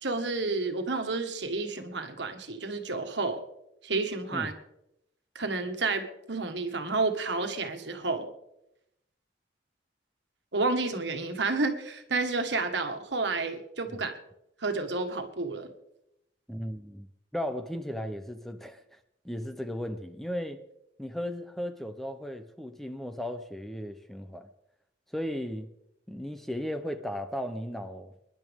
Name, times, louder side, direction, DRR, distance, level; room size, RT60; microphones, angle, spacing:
voice 1, 0.0-3.4 3.8-4.5 5.3-8.3 10.5-14.2 14.6-15.7, right 3 dB, 70° right, 6 dB, 1.7 m, -30 dB
voice 2, 16.5-19.0 19.2-20.6 21.0-24.5 25.1-25.7 26.1-28.1, equal, ahead, 8 dB, 0.7 m, -36 dB
26.0 x 11.0 x 3.6 m, 0.83 s
head